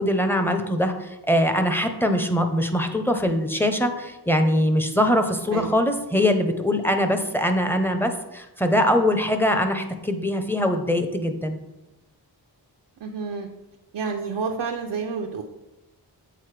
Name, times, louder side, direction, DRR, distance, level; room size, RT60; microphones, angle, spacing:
voice 1, 0.0-11.6, left 1 dB, 5° left, 6 dB, 0.7 m, -22 dB
voice 2, 13.0-13.5 13.9-15.4, right 5 dB, 85° right, 1 dB, 0.6 m, -29 dB
7.7 x 4.2 x 3.2 m, 0.98 s
cardioid pair, 50°, 41 cm